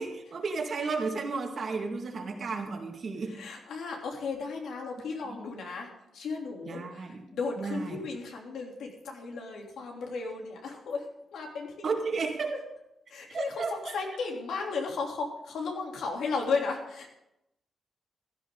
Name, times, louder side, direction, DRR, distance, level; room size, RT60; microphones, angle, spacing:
voice 1, 0.0-3.3 6.7-7.2 7.6-8.0 11.8-12.5 13.3-14.0, right 4 dB, 45° right, 3 dB, 2.0 m, -33 dB
voice 2, 3.3-12.0 12.5-12.6 13.1-17.1, left 4 dB, 85° left, 1 dB, 3.1 m, -35 dB
16.0 x 13.0 x 3.8 m, 0.84 s
wide cardioid pair, 165°, 0 cm